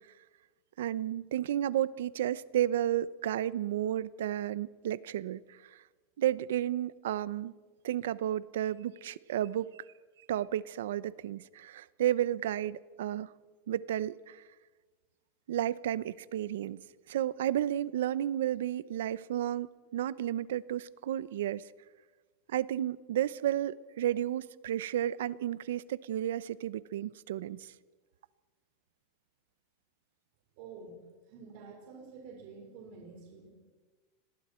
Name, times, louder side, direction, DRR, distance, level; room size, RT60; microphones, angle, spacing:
voice 1, 0.8-5.8 6.2-7.5 7.8-9.8 10.3-13.3 13.7-14.4 15.5-21.7 22.5-27.7, right 11 dB, 85° right, 0.7 m, -32 dB
voice 2, 30.6-31.0 31.3-33.5, right 4 dB, 50° right, 4.7 m, -48 dB
29.5 x 21.5 x 4.5 m
supercardioid pair, 170°, 0 cm